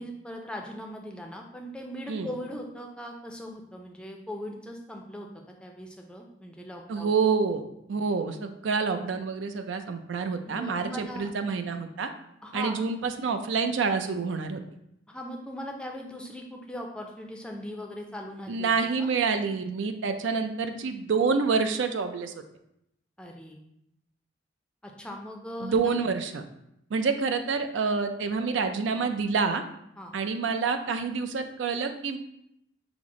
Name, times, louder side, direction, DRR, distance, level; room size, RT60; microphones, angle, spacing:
voice 1, 0.0-5.3 5.6-7.1 10.5-11.3 12.4-12.8 15.1-18.7 19.0-19.1 23.2-23.6 24.8-25.9 30.0-30.1, equal, 5° left, 1 dB, 0.4 m, -39 dB
voice 2, 6.9-7.6 7.9-12.1 12.5-14.6 18.5-22.3 25.6-26.4 26.9-29.6 30.1-32.2, right 5 dB, 90° right, 8 dB, 0.4 m, -27 dB
5.9 x 2.0 x 3.6 m, 0.78 s
head